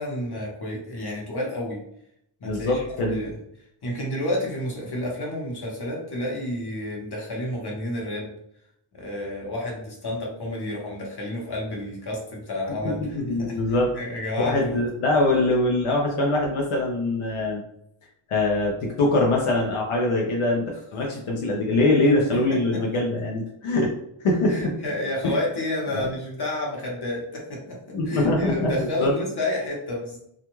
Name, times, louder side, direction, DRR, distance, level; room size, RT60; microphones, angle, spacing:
voice 1, 0.0-1.8 2.4-3.4 3.8-8.3 8.9-14.7 22.3-23.0 24.5-27.8 28.1-30.2, left 1 dB, 50° left, -2 dB, 1.0 m, -30 dB
voice 2, 2.4-3.3 13.1-13.9 14.4-17.6 18.3-20.6 20.9-23.9 24.2-24.7 25.2-25.3 25.9-26.1 27.9-29.1, left 2 dB, 85° left, -2 dB, 0.6 m, -23 dB
2.4 x 2.2 x 3.0 m, 0.74 s
cardioid pair, 60°, 49 cm